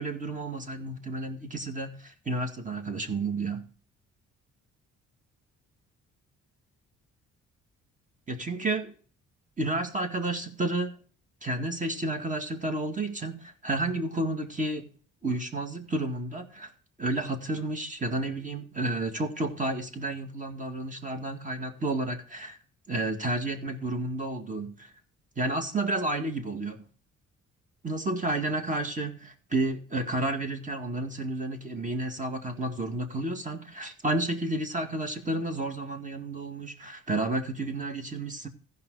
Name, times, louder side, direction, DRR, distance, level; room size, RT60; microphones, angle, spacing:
voice 1, 0.0-3.6 8.3-8.9 9.6-11.0 11.4-14.9 15.2-16.7 17.0-22.6 22.9-24.9 25.4-26.8 27.8-38.5, right 2 dB, 25° right, 2.0 m, -31 dB
15.5 x 5.5 x 4.8 m
cardioid pair, 90°, 30 cm